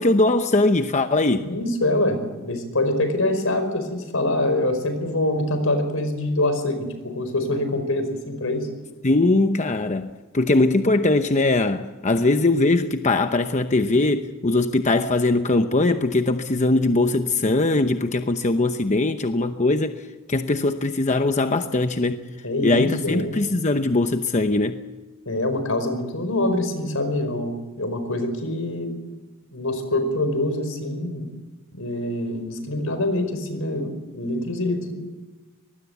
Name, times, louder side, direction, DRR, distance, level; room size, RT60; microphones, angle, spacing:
voice 1, 0.0-1.5 9.0-20.0 20.3-22.2 22.6-24.8, left 2 dB, 35° left, 0.9 m, -21 dB
voice 2, 1.4-8.7 22.4-23.3 25.2-28.9 29.5-31.3 31.7-34.9, left 1 dB, 80° left, 5.0 m, -25 dB
24.0 x 20.0 x 8.2 m
head